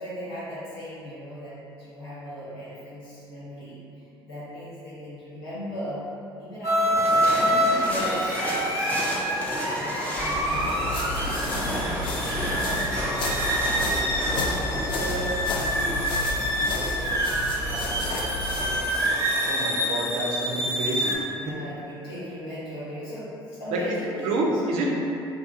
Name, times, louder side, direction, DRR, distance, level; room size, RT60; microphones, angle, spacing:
voice 1, 0.0-6.0 6.3-8.4 8.7-11.6 12.0-16.1 16.5-19.1 19.5-20.2 21.3-24.6, equal, 80° left, -11 dB, 0.9 m, -38 dB
sound 1, 6.6-21.1, equal, 25° right, 0.7 m, -26 dB
sound 2, 6.9-19.6, equal, 10° left, 0.7 m, -34 dB
sound 3, 10.2-18.8, left 2 dB, 40° left, 0.4 m, -32 dB
voice 2, 19.5-21.2 23.7-23.8 24.2-24.9, right 2 dB, 60° right, -2 dB, 0.5 m, -28 dB
2.6 x 2.3 x 2.4 m, 2.7 s
hypercardioid pair, 55°, 12 cm